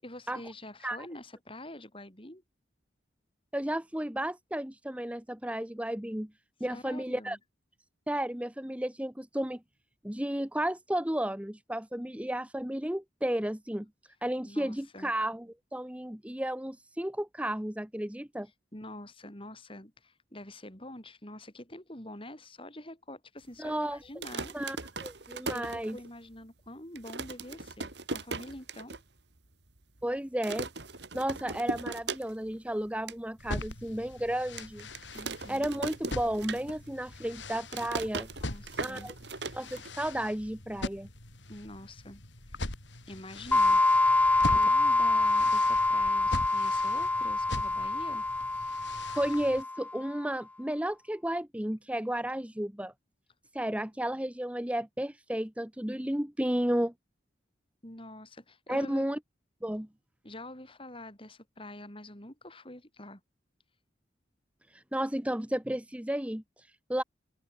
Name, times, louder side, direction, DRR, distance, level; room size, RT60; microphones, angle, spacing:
voice 1, 0.0-2.4 6.7-7.4 14.4-15.1 18.7-24.6 25.5-29.0 35.1-35.7 38.4-39.1 41.5-42.2 42.5-42.7 43.1-43.8 44.1-48.2 53.7-53.8 57.8-59.1 60.2-63.2, left 1 dB, 30° left, 5.6 m, -46 dB
voice 2, 3.5-6.3 6.6-7.4 8.1-9.6 10.0-13.9 14.2-15.5 15.7-18.5 23.6-24.0 24.5-26.0 30.0-30.7 31.1-34.9 35.5-38.3 38.8-39.1 39.5-41.1 49.1-52.9 53.5-56.9 58.7-59.2 59.6-59.9 64.7-67.0, right 1 dB, 5° right, 0.9 m, -33 dB
sound 1, 24.0-26.3 26.7-26.8 26.9-29.0 29.4-29.5 29.7-30.0 30.4-32.6 32.9-33.2 33.7-33.8 34.6-37.0 37.3-40.2, right 3 dB, 65° right, 2.9 m, -38 dB
sound 2, 33.4-49.6, left 1 dB, 80° left, 4.5 m, -42 dB
sound 3, 43.5-50.0, left 2 dB, 10° left, 0.3 m, -26 dB
head